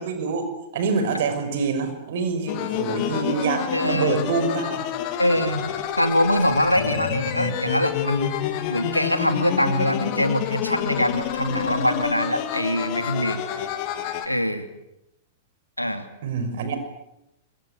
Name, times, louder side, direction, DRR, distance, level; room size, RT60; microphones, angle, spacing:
voice 1, 0.0-4.9 16.2-16.8, right 4 dB, 55° right, 9 dB, 5.7 m, -26 dB
sound 1, 2.5-14.3, left 10 dB, 40° left, 3.4 m, -28 dB
voice 2, 3.7-4.3 5.2-8.4 8.7-13.4 14.3-14.7 15.8-16.1, equal, 90° left, 8 dB, 2.8 m, -23 dB
26.5 x 26.5 x 8.2 m, 0.86 s
figure-of-eight pair, 100°, 0 cm